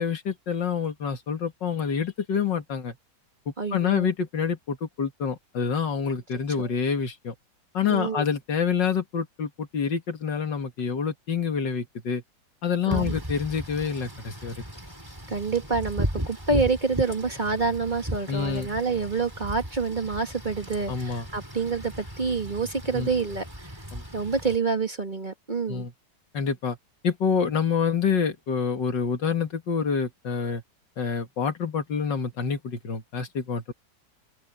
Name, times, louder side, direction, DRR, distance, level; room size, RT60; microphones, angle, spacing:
voice 1, 0.0-3.0 3.5-7.3 7.7-12.2 12.6-14.6 18.3-18.7 20.9-21.2 22.9-23.1 23.9-24.0 25.7-25.9 26.3-26.8 27.0-30.6 31.0-33.7, left 6 dB, 85° left, 2.6 m, -27 dB
voice 2, 3.6-4.1 6.6-6.7 7.9-8.2 12.9-13.1 15.3-23.8 24.1-25.9, right 4 dB, 25° right, 1.7 m, -27 dB
Wind / Rain, 12.9-24.6, equal, 10° right, 4.7 m, -36 dB
open air
omnidirectional pair, 1.9 m